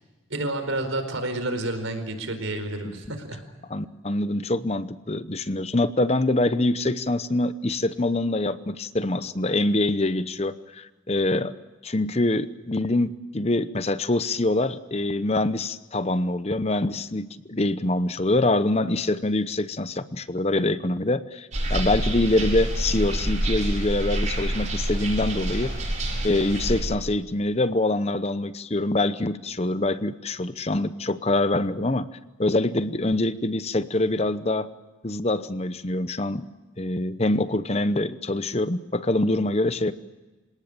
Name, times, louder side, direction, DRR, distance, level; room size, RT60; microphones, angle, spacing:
voice 1, 0.3-3.4, right 1 dB, 80° right, 8 dB, 4.7 m, -29 dB
voice 2, 3.7-11.5 11.8-25.7 26.2-32.1 32.4-34.7 35.0-36.5 36.8-39.9, left 2 dB, 30° left, 13 dB, 0.8 m, -25 dB
sound 1, 21.5-26.8, right 1 dB, 35° right, 7.4 m, -27 dB
27.5 x 18.0 x 8.9 m, 1.2 s
head